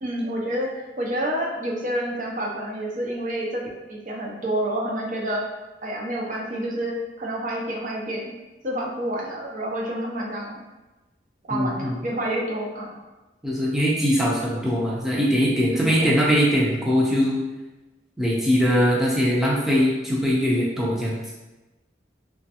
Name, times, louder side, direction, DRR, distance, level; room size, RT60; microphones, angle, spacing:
voice 1, 0.0-0.7 1.0-3.6 3.9-5.4 5.8-8.3 8.6-10.6 11.5-13.0 15.7-16.2, right 1 dB, 45° right, -2 dB, 0.5 m, -28 dB
voice 2, 11.5-12.0 13.4-17.4 18.2-21.2, equal, ahead, -5 dB, 0.5 m, -21 dB
3.0 x 2.3 x 2.8 m, 1.1 s
head